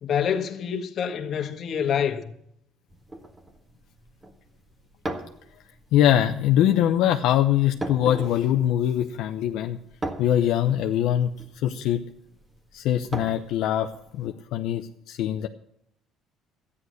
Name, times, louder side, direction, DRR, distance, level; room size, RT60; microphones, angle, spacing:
voice 1, 0.0-2.3, left 8 dB, 50° left, 1.5 m, -27 dB
sound 1, 2.9-14.3, right 2 dB, 20° right, 1.6 m, -40 dB
voice 2, 5.9-9.8 10.2-12.0 12.7-15.5, left 11 dB, 75° left, 0.7 m, -23 dB
13.0 x 9.9 x 6.4 m
cardioid pair, 115°, 0 cm